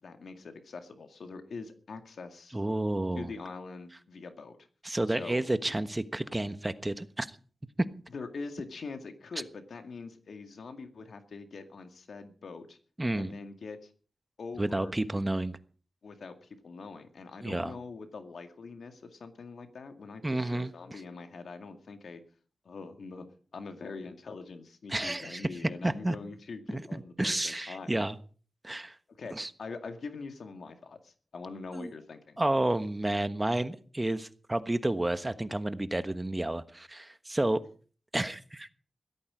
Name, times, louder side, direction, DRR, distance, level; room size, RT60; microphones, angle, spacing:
voice 1, 0.0-2.6 3.2-4.6 5.1-5.4 8.1-12.8 13.1-13.8 14.4-14.9 16.0-22.2 22.6-23.3 23.5-28.0 29.2-32.4, left 4 dB, 85° left, 2.1 m, -43 dB
voice 2, 2.5-3.3 4.8-7.4 13.0-13.4 14.6-15.6 17.4-17.7 20.2-21.0 24.9-25.5 25.8-26.2 26.7-28.1 28.6-28.9 29.3-29.5 31.7-31.9 32.4-37.6 38.1-38.7, right 1 dB, 20° right, 1.3 m, -31 dB
16.5 x 13.5 x 5.0 m
cardioid pair, 65°, 0 cm